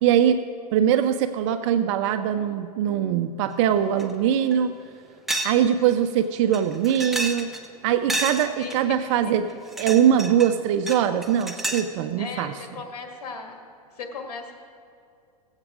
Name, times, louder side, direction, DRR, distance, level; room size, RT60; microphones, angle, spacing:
voice 1, 0.0-0.4 0.7-4.7 5.4-7.5 7.8-9.5 9.8-12.5, right 9 dB, 50° right, 10 dB, 0.5 m, -22 dB
sound 1, 4.0-4.1 4.5-4.6 5.3-5.6 5.9-6.0 6.5-7.7 8.1-8.8 9.5-10.5 10.9-11.9, right 2 dB, ahead, 0.7 m, -30 dB
voice 2, 8.6-9.0 12.2-13.6 13.9-14.5, left 4 dB, 75° left, 2 dB, 1.9 m, -36 dB
17.0 x 8.0 x 3.7 m, 2.4 s
hypercardioid pair, 125°, 20 cm